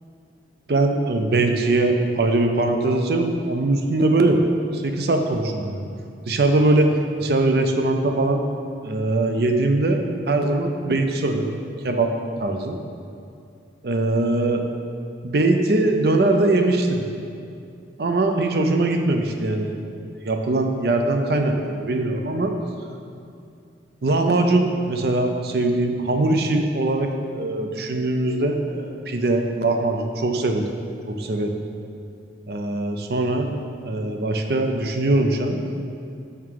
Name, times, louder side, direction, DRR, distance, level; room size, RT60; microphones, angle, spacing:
voice 1, 0.7-4.4 4.7-5.9 6.3-6.9 7.2-8.4 8.8-11.5 11.8-12.1 12.4-12.8 13.8-14.6 15.2-17.0 18.0-19.7 20.2-22.5 24.0-30.8 31.1-31.6 32.5-33.5 33.8-35.6, right 2 dB, 60° right, 4 dB, 0.5 m, -21 dB
5.8 x 4.7 x 4.7 m, 2.5 s
head